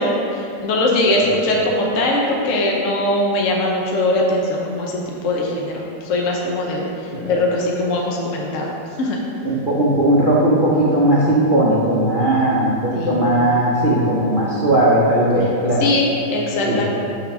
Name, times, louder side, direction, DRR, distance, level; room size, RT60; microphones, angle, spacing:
voice 1, 0.0-8.7 9.0-9.2 12.9-13.2 15.8-16.9, left 1 dB, 60° left, -2 dB, 0.8 m, -21 dB
voice 2, 9.4-15.8 16.6-16.8, right 1 dB, 80° right, -7 dB, 0.4 m, -17 dB
6.2 x 3.6 x 5.9 m, 2.6 s
omnidirectional pair, 2.2 m